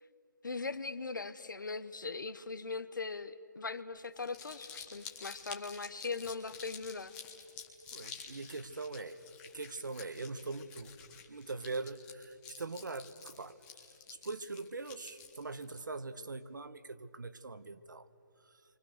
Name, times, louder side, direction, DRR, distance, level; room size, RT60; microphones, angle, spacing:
voice 1, 0.4-7.1, left 4 dB, 85° left, 11 dB, 1.2 m, -40 dB
Crumpling crinkling, 4.0-15.8, left 6 dB, 10° left, 1.2 m, -50 dB
voice 2, 7.9-9.2 9.5-10.9 11.3-13.6 14.1-18.1 18.5-18.6, right 3 dB, 75° right, 13 dB, 1.3 m, -42 dB
29.5 x 24.5 x 6.6 m, 2.6 s
hypercardioid pair, 170°, 10 cm